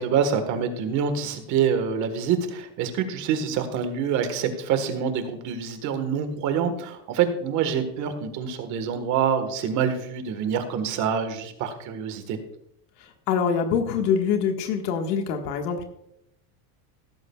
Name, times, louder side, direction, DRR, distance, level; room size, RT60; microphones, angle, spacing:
voice 1, 0.0-12.4, right 7 dB, 35° right, 8 dB, 1.5 m, -26 dB
voice 2, 13.3-15.8, left 6 dB, 80° left, 4 dB, 1.7 m, -24 dB
16.0 x 14.0 x 2.3 m, 0.77 s
supercardioid pair, 165°, 47 cm